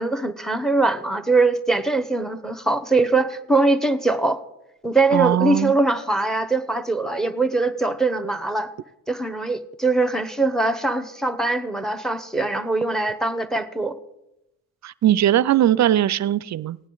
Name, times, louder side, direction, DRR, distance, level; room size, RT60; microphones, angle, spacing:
voice 1, 0.0-4.4 4.8-8.7 9.1-14.0, right 3 dB, ahead, 11 dB, 0.9 m, -22 dB
voice 2, 5.1-5.7 14.8-16.8, right 12 dB, 45° right, 19 dB, 0.5 m, -19 dB
16.5 x 9.6 x 3.9 m, 0.90 s
supercardioid pair, 65°, 39 cm